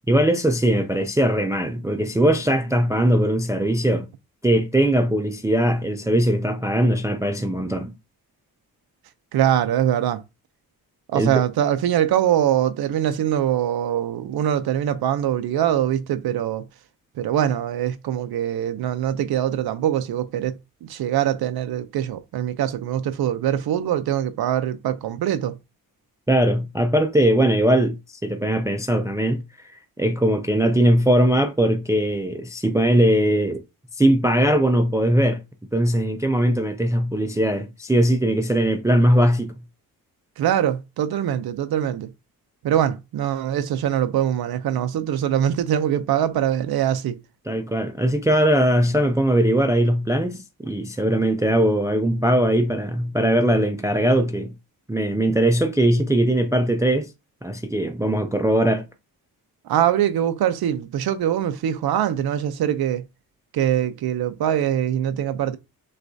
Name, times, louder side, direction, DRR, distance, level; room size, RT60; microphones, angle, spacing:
voice 1, 0.1-4.1 4.4-7.9 11.1-11.3 26.3-28.0 28.2-33.6 33.9-35.4 35.7-39.5 47.5-54.5 54.9-57.1 57.4-58.8, right 1 dB, 10° right, 0.3 m, -20 dB
voice 2, 9.3-10.2 11.1-16.6 17.2-20.6 20.8-25.5 40.4-42.1 42.6-47.2 59.7-63.0 63.5-65.6, right 10 dB, 90° right, 0.5 m, -23 dB
6.4 x 2.3 x 2.6 m
wide cardioid pair, 150°, 36 cm